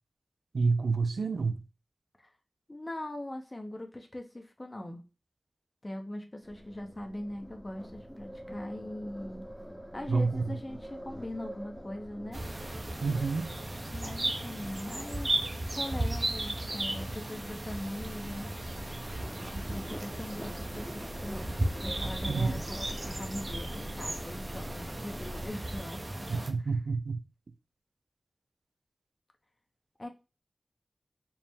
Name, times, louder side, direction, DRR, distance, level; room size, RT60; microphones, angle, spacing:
voice 1, 0.5-1.6 10.1-10.6 13.0-13.5 22.3-22.6 26.3-27.2, right 4 dB, 90° right, 0.3 m, -28 dB
voice 2, 2.7-5.0 5.8-9.5 9.9-12.4 13.9-15.4 15.7-18.5 19.5-26.7 30.0-30.1, left 1 dB, 35° left, 0.7 m, -41 dB
sound 1, 6.4-25.5, equal, 5° left, 0.7 m, -45 dB
sound 2, 12.3-26.5, right 1 dB, 45° right, 0.6 m, -36 dB
4.6 x 2.0 x 3.4 m
cardioid pair, 40°, 0 cm